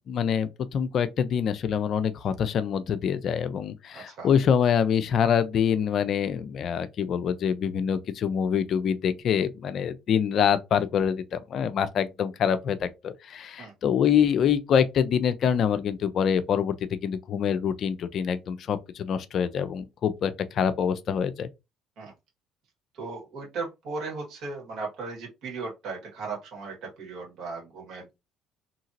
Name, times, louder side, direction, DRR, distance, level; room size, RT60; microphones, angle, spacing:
voice 1, 0.1-16.7 17.0-21.5, left 8 dB, 60° left, 0.4 m, -25 dB
voice 2, 3.9-4.3 13.6-13.7 22.0-22.1 22.9-28.1, right 4 dB, 65° right, 1.7 m, -37 dB
2.8 x 2.8 x 2.6 m
hypercardioid pair, 65°, 0 cm